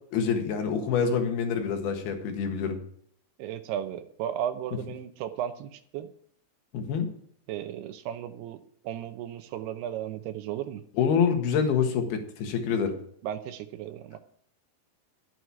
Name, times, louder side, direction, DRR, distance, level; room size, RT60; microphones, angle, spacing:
voice 1, 0.1-2.8 6.7-7.1 11.0-13.0, left 6 dB, 75° left, 5 dB, 3.6 m, -26 dB
voice 2, 3.4-6.1 7.5-10.8 13.2-14.2, right 10 dB, 85° right, 8 dB, 2.8 m, -35 dB
13.0 x 9.2 x 4.7 m, 0.63 s
omnidirectional pair, 4.6 m